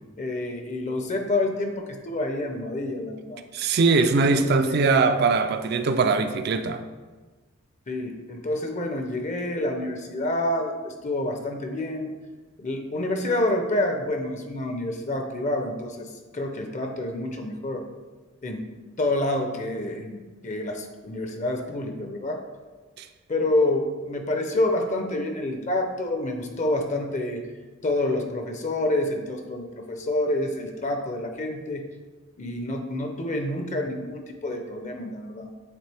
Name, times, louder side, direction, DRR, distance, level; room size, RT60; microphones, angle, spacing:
voice 1, 0.2-3.4 4.1-5.0 7.9-12.1 12.6-17.9 18.4-22.4 23.3-27.4 27.8-31.9 32.4-35.5, left 1 dB, 35° left, 4 dB, 0.5 m, -28 dB
voice 2, 3.5-6.8 23.0-23.1, right 4 dB, 50° right, 9 dB, 0.4 m, -21 dB
8.1 x 3.6 x 3.3 m, 1.3 s
head